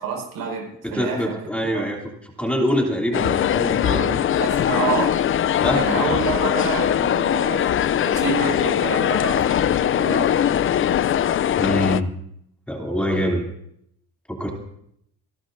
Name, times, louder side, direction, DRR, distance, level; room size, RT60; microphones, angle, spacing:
voice 1, 0.0-1.3 1.7-1.9 3.9-5.2 5.7-7.6 8.0-10.4 10.7-11.1, right 5 dB, 80° right, 2 dB, 5.0 m, -28 dB
voice 2, 0.9-2.0 2.4-4.2 5.6-5.8 11.6-12.1 12.7-13.4 14.3-14.5, equal, 5° left, 0 dB, 3.0 m, -24 dB
sound 1, 3.1-12.0, left 10 dB, 35° left, 0.5 m, -21 dB
28.5 x 11.5 x 2.6 m, 0.73 s
cardioid pair, 90°, 36 cm